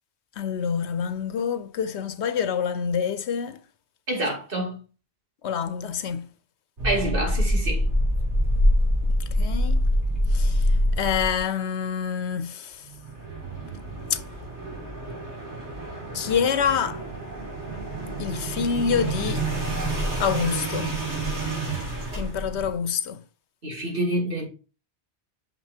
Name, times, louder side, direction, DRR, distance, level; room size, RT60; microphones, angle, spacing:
voice 1, 0.4-3.6 5.4-6.3 9.4-9.8 10.3-10.7 11.0-12.8 14.1-14.2 16.1-17.0 18.2-19.5 20.2-20.9 22.2-23.2, left 7 dB, 85° left, 1.1 m, -26 dB
voice 2, 4.1-4.8 6.8-7.8 23.6-24.5, right 1 dB, 55° right, 2.7 m, -27 dB
sound 1, 6.8-11.4 12.9-22.8, equal, 90° right, 3.6 m, -26 dB
9.1 x 6.0 x 2.8 m
omnidirectional pair, 1.1 m